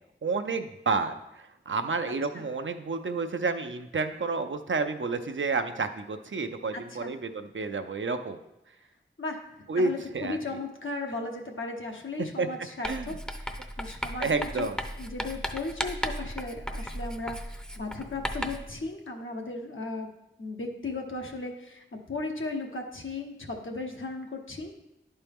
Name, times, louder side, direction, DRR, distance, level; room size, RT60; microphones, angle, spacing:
voice 1, 0.2-8.4 9.7-10.4 12.4-12.5 12.8-13.1 14.2-14.8, right 4 dB, 75° right, 7 dB, 0.6 m, -30 dB
voice 2, 6.7-7.1 9.2-9.4 9.8-13.1 13.4-14.7 15.0-20.1 20.4-24.7, left 3 dB, 80° left, 1 dB, 1.0 m, -36 dB
Writing, 12.8-18.7, equal, 5° left, 0.6 m, -35 dB
11.0 x 4.4 x 3.5 m, 0.87 s
wide cardioid pair, 40°, 20 cm